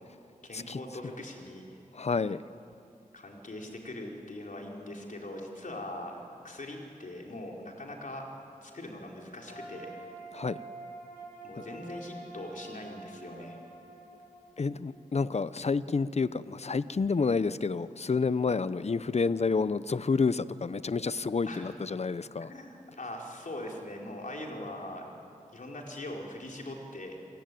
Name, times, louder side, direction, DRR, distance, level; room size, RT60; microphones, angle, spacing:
voice 1, 0.4-1.6 3.1-8.2 8.6-9.9 11.4-13.6 21.5-21.7 22.4-25.1 25.5-27.2, left 1 dB, 65° left, 0 dB, 4.4 m, -41 dB
voice 2, 1.9-2.4 10.3-10.6 14.6-22.5, left 4 dB, 50° left, 15 dB, 0.7 m, -29 dB
sound 1, 9.4-15.4, right 2 dB, 85° left, 7.4 m, -47 dB
27.5 x 17.5 x 9.3 m, 2.6 s
cardioid pair, 50°, 14 cm